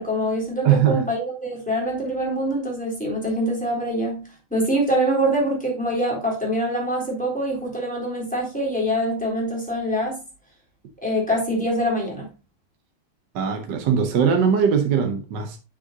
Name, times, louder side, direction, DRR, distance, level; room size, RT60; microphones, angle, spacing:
voice 1, 0.0-4.2 4.5-10.2 11.0-12.3, equal, 5° left, 3.7 m, -24 dB
voice 2, 0.6-1.0 13.3-15.6, right 7 dB, 60° right, 1.5 m, -20 dB
10.0 x 6.2 x 2.8 m
omnidirectional pair, 2.4 m